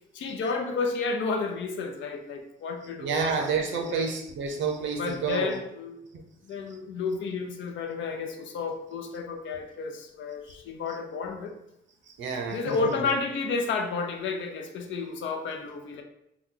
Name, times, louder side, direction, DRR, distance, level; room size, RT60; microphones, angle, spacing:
voice 1, 0.1-4.1 5.0-6.0 6.4-11.5 12.5-16.0, left 4 dB, 70° left, 4 dB, 0.6 m, -31 dB
voice 2, 3.0-5.6 6.1-6.2 12.1-13.0, right 5 dB, 70° right, 3 dB, 0.7 m, -29 dB
3.0 x 2.3 x 3.7 m, 0.80 s
cardioid pair, 90°, 20 cm